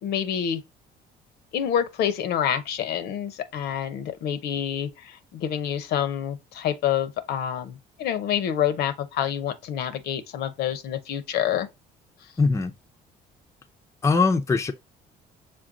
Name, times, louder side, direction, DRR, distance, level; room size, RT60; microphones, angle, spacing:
voice 1, 0.0-0.6 1.5-11.7, left 9 dB, 70° left, 0.7 m, -27 dB
voice 2, 12.4-12.7 14.0-14.7, left 4 dB, 15° left, 0.5 m, -21 dB
6.0 x 2.2 x 3.7 m
cardioid pair, 110°, 17 cm